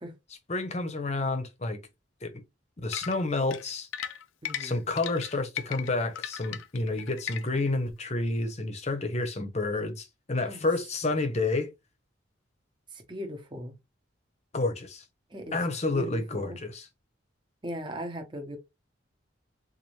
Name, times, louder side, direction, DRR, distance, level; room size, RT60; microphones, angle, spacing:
voice 1, 0.5-1.8 2.2-2.4 2.8-3.9 4.6-11.7 14.5-15.0 15.5-16.8, left 2 dB, 35° left, 0.8 m, -29 dB
sound 1, 2.9-7.7, left 9 dB, 85° left, 0.5 m, -37 dB
voice 2, 4.4-4.9 10.4-10.6 12.9-13.7 15.3-15.6 15.9-16.6 17.6-18.6, equal, 25° right, 0.9 m, -38 dB
4.1 x 2.6 x 3.1 m
head